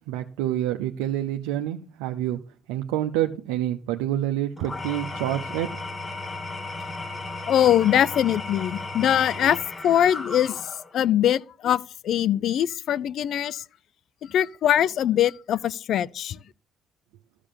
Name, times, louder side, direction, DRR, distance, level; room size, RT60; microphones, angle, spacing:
voice 1, 0.1-2.4 2.7-5.7, right 12 dB, 90° right, 0.7 m, -27 dB
Engine / Tools, 4.6-11.0, left 2 dB, 30° left, 1.8 m, -35 dB
voice 2, 7.5-9.6 9.8-13.6 14.2-16.4, left 10 dB, 65° left, 0.5 m, -22 dB
13.5 x 4.9 x 7.4 m
supercardioid pair, 65°, 0 cm